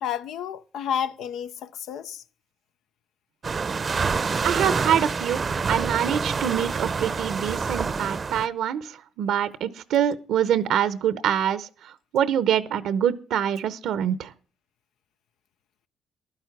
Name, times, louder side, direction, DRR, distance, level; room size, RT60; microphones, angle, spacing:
voice 1, 0.0-2.2, left 9 dB, 80° left, 0.6 m, -31 dB
sound 1, 3.4-8.5, right 5 dB, 40° right, 0.6 m, -27 dB
voice 2, 4.4-5.4 5.7-11.7 12.1-14.3, right 9 dB, 80° right, 0.8 m, -25 dB
11.5 x 10.5 x 5.9 m
cardioid pair, 90°, 0 cm